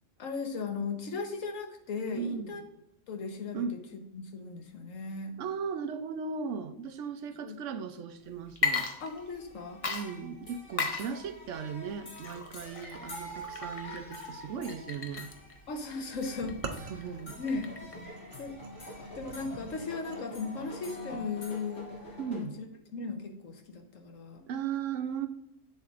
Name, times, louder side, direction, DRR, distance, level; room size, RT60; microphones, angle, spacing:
voice 1, 0.2-2.6 3.1-3.6 4.1-5.3 7.4-7.6 9.0-9.8 15.7-16.9 17.4-17.7 18.4-18.6 19.1-21.9 22.4-22.7 22.9-24.4, left 4 dB, 80° left, 5 dB, 1.4 m, -37 dB
voice 2, 2.1-2.6 3.5-3.8 5.4-8.9 9.9-15.3 16.9-17.4 22.2-22.6 24.5-25.3, right 6 dB, 70° right, 9 dB, 1.0 m, -37 dB
Water / Liquid, 8.5-9.5 9.8-18.1, left 4 dB, 35° left, 0.6 m, -37 dB
sound 1, 9.0-22.4, equal, 65° left, 2.3 m, -46 dB
sound 2, 16.4-20.2, right 4 dB, 45° right, 0.7 m, -44 dB
8.3 x 7.2 x 2.5 m, 0.83 s
omnidirectional pair, 1.3 m